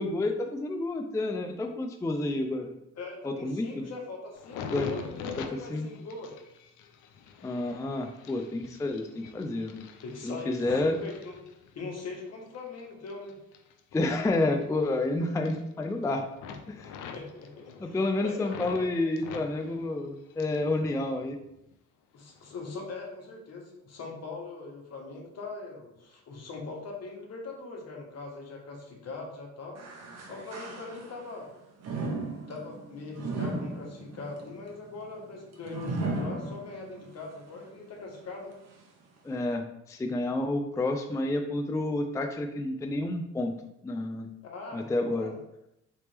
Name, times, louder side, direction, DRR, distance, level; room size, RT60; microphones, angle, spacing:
voice 1, 0.0-2.7 3.2-3.8 4.7-4.9 5.7-5.9 7.4-9.9 10.2-11.0 13.9-16.2 16.7-16.9 17.8-21.4 39.2-43.5 43.8-44.3 44.7-45.3, left 2 dB, 10° left, 4 dB, 0.3 m, -29 dB
voice 2, 2.9-6.4 10.0-11.4 11.7-13.4 17.1-18.9 19.2-19.4 22.1-29.8 30.3-31.5 32.3-38.6 44.4-45.4, left 3 dB, 55° left, 0 dB, 1.3 m, -41 dB
sound 1, 4.3-12.0 12.5-15.1 15.3-16.0 16.3-18.8 19.2-20.7 21.0-21.7 22.3-22.5, left 6 dB, 80° left, 0.6 m, -45 dB
sound 2, 29.8-31.3 31.8-37.1 37.6-37.7 38.5-38.6, right 2 dB, 60° right, 0.9 m, -36 dB
4.0 x 3.3 x 3.3 m, 0.84 s
cardioid pair, 90°, 30 cm